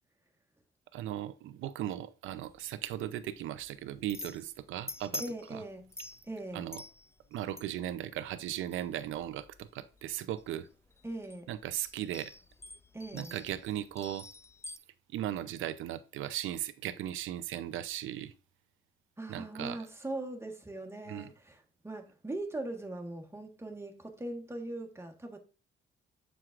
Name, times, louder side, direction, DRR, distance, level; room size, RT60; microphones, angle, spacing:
voice 1, 0.9-5.2 5.5-5.6 6.5-6.8 7.3-10.7 11.5-12.3 13.1-14.3 15.1-18.3 19.3-19.8 21.1-21.3, right 12 dB, 85° right, 0.6 m, -37 dB
sound 1, 2.3-14.8, left 2 dB, 15° left, 0.5 m, -48 dB
voice 2, 5.2-5.9 6.3-6.7 11.0-11.5 12.9-13.3 19.2-25.4, right 2 dB, 15° right, 1.4 m, -40 dB
7.7 x 6.3 x 2.5 m
cardioid pair, 90°, 20 cm